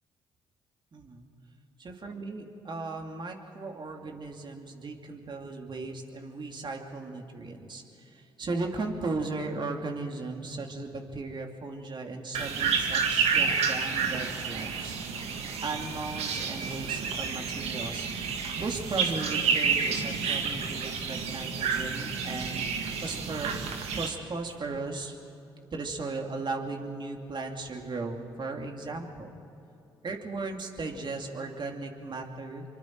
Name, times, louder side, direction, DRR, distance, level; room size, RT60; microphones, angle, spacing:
voice 1, 0.9-1.3 1.8-7.8 8.1-14.9 15.6-18.1 18.5-22.6 23.0-23.5 23.9-25.1 25.7-29.3 30.0-32.6, right 3 dB, 45° right, 3 dB, 3.0 m, -36 dB
sound 1, 12.3-24.1, right 6 dB, 70° right, 2.1 m, -30 dB
26.5 x 23.5 x 4.7 m, 2.9 s
hypercardioid pair, 50°, 11 cm